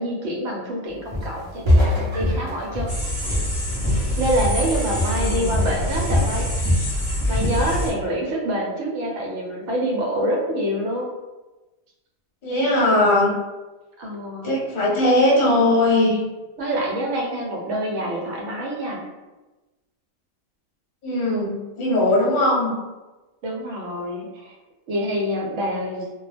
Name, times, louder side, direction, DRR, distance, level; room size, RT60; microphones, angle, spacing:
voice 1, 0.0-3.0 4.2-6.7 7.3-11.2 14.0-14.5 16.6-19.0 23.4-24.5 24.9-26.0, equal, 65° right, -1 dB, 0.9 m, -26 dB
Walk footsteps, 1.1-1.4 1.6-4.7 4.9-5.3 5.5-6.9 7.2-7.6, left 1 dB, 40° right, 0.4 m, -23 dB
sound 1, 2.9-7.9, equal, 15° left, 0.9 m, -25 dB
voice 2, 5.0-5.5 12.4-13.3 14.4-16.2 21.0-22.8, left 1 dB, 45° left, -4 dB, 0.8 m, -19 dB
2.2 x 2.2 x 3.2 m, 1.1 s
omnidirectional pair, 1.4 m